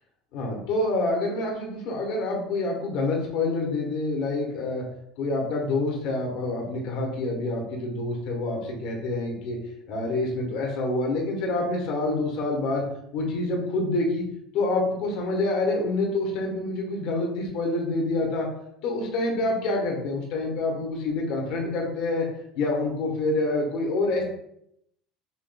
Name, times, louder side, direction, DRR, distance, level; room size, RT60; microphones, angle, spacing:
voice 1, 0.3-4.8 5.2-9.6 9.9-12.8 13.1-14.3 14.5-18.4 18.8-22.3 22.5-24.2, left 2 dB, 60° left, 0 dB, 1.1 m, -27 dB
5.7 x 3.0 x 2.3 m, 0.75 s
cardioid pair, 165°, 0 cm